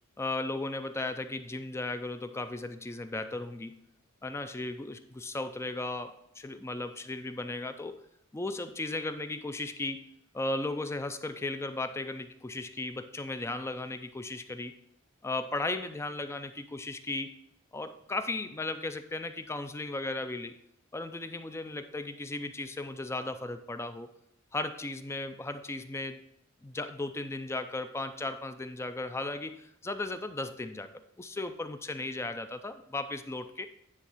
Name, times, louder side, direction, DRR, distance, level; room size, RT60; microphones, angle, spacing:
voice 1, 0.2-3.8 4.2-8.0 8.3-14.7 15.2-17.4 17.7-20.5 20.9-24.1 24.5-26.2 26.6-33.7, left 2 dB, 15° left, 10 dB, 0.4 m, -36 dB
9.8 x 3.5 x 5.6 m, 0.76 s
head